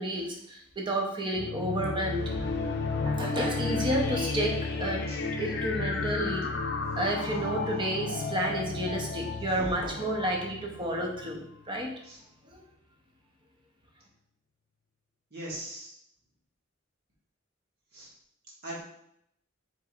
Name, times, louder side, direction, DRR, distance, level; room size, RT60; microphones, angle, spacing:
voice 1, 0.0-2.5 3.0-5.0 5.4-6.5 7.0-11.9 12.5-12.6, right 1 dB, 25° right, 0 dB, 0.7 m, -31 dB
sound 1, 1.3-11.6, left 3 dB, 55° left, 0.5 m, -33 dB
voice 2, 15.3-15.9 17.9-18.1 18.6-18.8, right 1 dB, 50° right, -5 dB, 1.6 m, -39 dB
4.6 x 3.9 x 2.4 m, 0.74 s
head